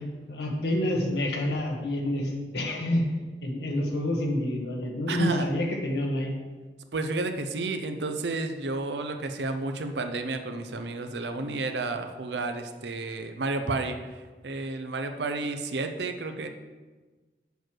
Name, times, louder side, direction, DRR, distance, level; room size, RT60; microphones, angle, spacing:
voice 1, 0.3-3.1 3.4-6.3, left 1 dB, 75° left, 0 dB, 1.4 m, -28 dB
voice 2, 5.1-5.5 6.9-16.5, right 3 dB, 80° right, 7 dB, 0.7 m, -31 dB
7.0 x 4.6 x 6.3 m, 1.3 s
head